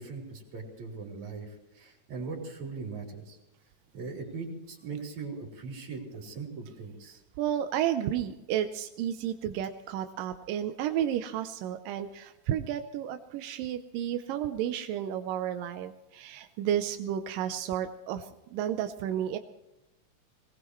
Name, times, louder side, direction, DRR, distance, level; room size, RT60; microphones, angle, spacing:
voice 1, 0.0-3.4 3.9-7.2, right 4 dB, 55° right, -1 dB, 4.9 m, -40 dB
voice 2, 7.4-19.4, right 10 dB, 90° right, 7 dB, 2.5 m, -32 dB
23.0 x 19.5 x 3.2 m, 0.95 s
omnidirectional pair, 3.8 m